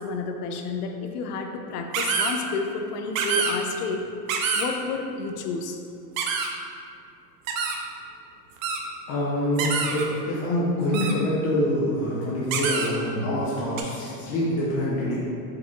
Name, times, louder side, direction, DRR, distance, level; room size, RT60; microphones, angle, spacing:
voice 1, 0.0-4.1 4.6-5.8, left 4 dB, 70° left, 4 dB, 0.6 m, -30 dB
sound 1, 1.9-2.3 3.1-3.5 4.3-4.7 6.2-6.5 7.5-7.8 8.6-8.8 9.6-10.0 10.9-11.1 12.5-12.9 13.8-13.9, right 5 dB, 55° right, 0.6 m, -26 dB
voice 2, 9.1-15.2, left 1 dB, 30° left, -7 dB, 0.5 m, -25 dB
4.8 x 3.5 x 2.9 m, 2.6 s
supercardioid pair, 165°, 48 cm